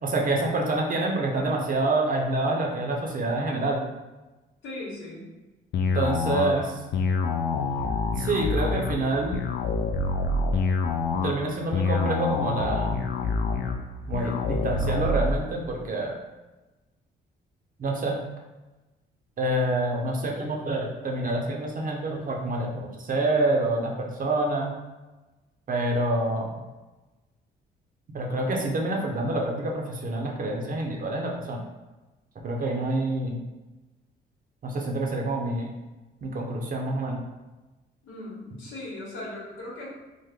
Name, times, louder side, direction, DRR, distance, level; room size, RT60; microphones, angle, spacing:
voice 1, 0.0-3.8 5.9-6.7 8.2-9.4 11.2-13.0 14.1-16.1 17.8-18.2 19.4-24.7 25.7-26.5 28.1-31.6 32.4-33.4 34.6-35.7 36.2-37.2, right 2 dB, 45° right, 0 dB, 0.6 m, -27 dB
voice 2, 4.6-5.3 38.0-39.9, left 2 dB, 85° left, -5 dB, 1.1 m, -38 dB
sound 1, 5.7-15.3, left 4 dB, 60° left, 0.4 m, -26 dB
3.2 x 2.1 x 3.5 m, 1.1 s
cardioid pair, 90°, 20 cm